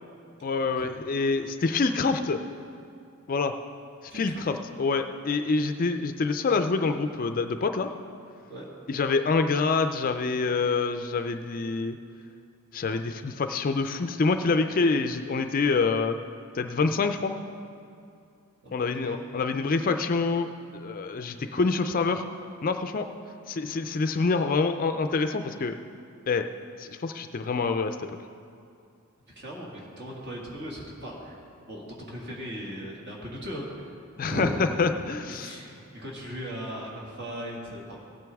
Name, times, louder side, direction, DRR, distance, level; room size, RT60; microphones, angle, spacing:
voice 1, 0.4-2.4 3.3-3.5 4.1-7.9 8.9-12.0 12.7-16.2 16.5-17.3 18.7-22.2 22.6-23.1 23.5-25.8 26.3-26.5 26.8-28.1 34.2-34.5 34.8-35.5, left 4 dB, 40° left, 8 dB, 0.4 m, -26 dB
voice 2, 4.1-4.4 8.5-8.7 18.6-19.3 29.3-31.4 31.7-34.8 35.3-38.2, equal, 50° right, -3 dB, 2.1 m, -38 dB
16.0 x 9.2 x 3.5 m, 2.5 s
head